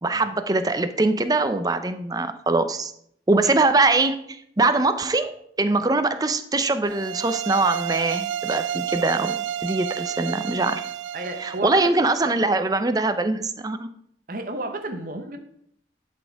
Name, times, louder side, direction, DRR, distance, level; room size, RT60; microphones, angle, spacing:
voice 1, 0.0-2.9 3.3-10.8 11.4-13.9, right 2 dB, 20° right, 9 dB, 0.5 m, -22 dB
sound 1, 6.9-11.7, right 10 dB, 90° right, 0.3 m, -30 dB
voice 2, 11.1-11.9 12.2-12.4 14.3-15.4, right 2 dB, 45° right, 5 dB, 0.9 m, -32 dB
11.0 x 4.3 x 4.6 m, 0.70 s
head